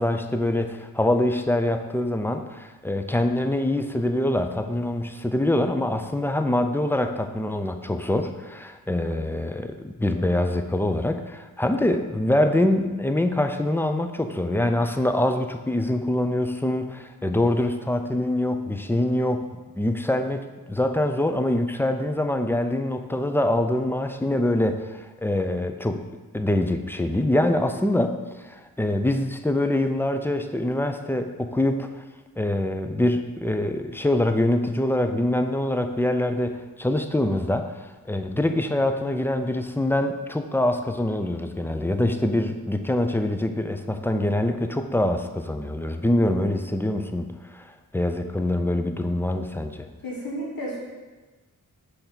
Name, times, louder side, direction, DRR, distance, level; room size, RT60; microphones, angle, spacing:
voice 1, 0.0-19.4 19.8-26.0 26.3-32.0 32.4-47.6 47.9-49.9, left 1 dB, 5° left, 6 dB, 0.3 m, -24 dB
voice 2, 50.0-50.8, equal, 85° left, -4 dB, 1.8 m, -32 dB
6.4 x 3.4 x 5.6 m, 1.2 s
wide cardioid pair, 135°, 34 cm